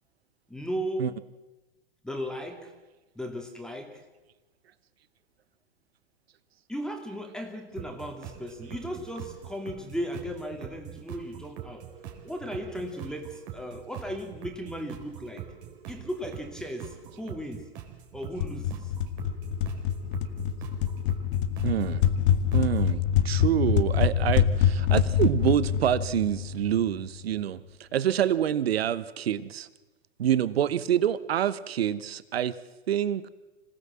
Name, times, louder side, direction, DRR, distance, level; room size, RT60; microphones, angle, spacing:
voice 1, 0.5-1.2 2.0-2.7 3.2-4.0 6.7-11.8 12.2-15.5 15.9-17.7 18.1-18.9, equal, ahead, 4 dB, 2.4 m, -36 dB
sound 1, 7.8-22.9, right 10 dB, 55° right, 4.5 m, -44 dB
sound 2, 18.4-27.1, left 9 dB, 55° left, 1.6 m, -25 dB
voice 2, 21.6-22.0 22.5-29.7 30.2-32.6 32.9-33.3, right 10 dB, 75° right, 16 dB, 1.0 m, -27 dB
26.5 x 17.0 x 7.6 m, 1.1 s
hypercardioid pair, 115°, 31 cm